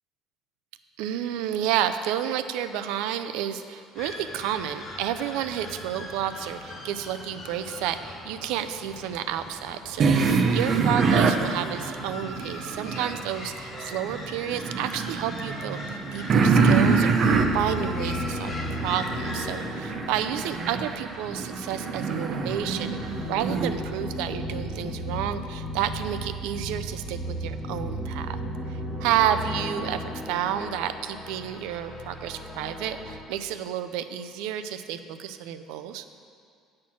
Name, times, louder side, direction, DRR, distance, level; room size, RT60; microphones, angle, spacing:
voice 1, 1.0-28.4 28.7-36.0, right 10 dB, 85° right, 10 dB, 0.4 m, -30 dB
sound 1, 3.9-19.7, left 1 dB, 30° left, 1.1 m, -40 dB
sound 2, 10.0-13.3 13.7-23.7, right 4 dB, 35° right, 0.5 m, -25 dB
sound 3, 17.2-33.2, equal, 10° left, 1.0 m, -35 dB
8.6 x 4.4 x 7.2 m, 2.2 s
cardioid pair, 160°, 0 cm